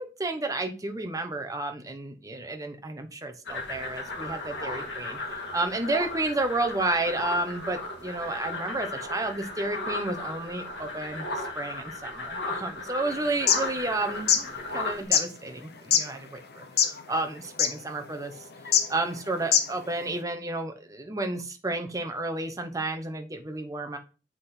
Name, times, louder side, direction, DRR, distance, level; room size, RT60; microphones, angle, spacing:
voice 1, 0.0-5.2 5.5-18.3 18.9-24.0, right 2 dB, 20° right, 5 dB, 1.1 m, -31 dB
sound 1, 3.5-15.0, left 2 dB, 80° left, 2.4 m, -35 dB
sound 2, 13.3-13.6 14.1-14.4 15.1-15.2 15.9-16.0 16.6-17.0 17.3-17.4 17.6-17.7 18.6-18.8 19.4-19.8, left 8 dB, 65° left, 1.0 m, -21 dB
7.6 x 5.8 x 4.3 m, 0.34 s
head